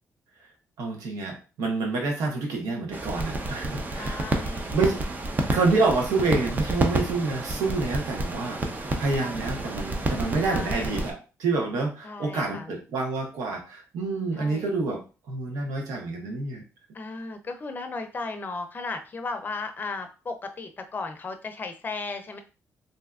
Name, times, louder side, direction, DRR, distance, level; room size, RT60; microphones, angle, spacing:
voice 1, 0.8-4.2 4.7-5.1 5.5-15.0 15.3-16.6, right 3 dB, 85° right, 2 dB, 0.9 m, -28 dB
sound 1, 2.9-11.1, right 2 dB, 30° right, 0.6 m, -30 dB
voice 2, 3.9-4.7 10.5-10.9 12.0-12.7 14.3-14.7 16.9-22.4, left 3 dB, 35° left, 7 dB, 0.6 m, -35 dB
3.3 x 2.7 x 2.4 m, 0.33 s
cardioid pair, 90°, 6 cm